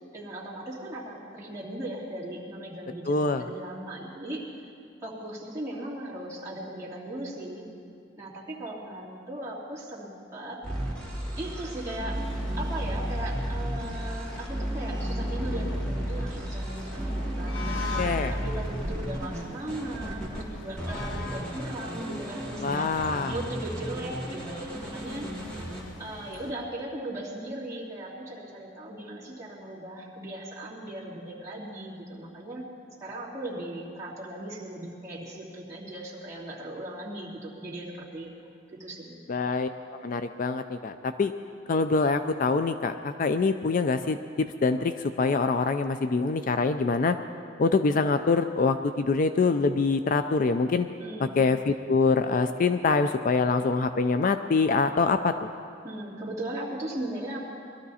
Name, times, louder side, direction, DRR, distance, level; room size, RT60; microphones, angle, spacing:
voice 1, 0.1-3.1 3.4-4.4 5.0-7.7 8.2-10.6 11.4-12.2 12.6-22.9 23.3-25.3 26.0-32.6 33.0-38.3 38.8-39.2 51.0-51.4 55.8-57.4, right 1 dB, 15° right, -7 dB, 2.7 m, -38 dB
voice 2, 3.1-3.4 17.7-18.3 22.6-23.3 39.3-39.7 40.0-41.3 41.7-47.2 47.6-50.9 51.4-55.5, left 4 dB, 45° left, 9 dB, 0.4 m, -25 dB
sound 1, 10.6-20.4 20.8-25.8, equal, 5° left, 2.0 m, -33 dB
sound 2, 12.1-26.5, left 3 dB, 85° left, 1.2 m, -43 dB
21.0 x 13.0 x 4.2 m, 2.5 s
head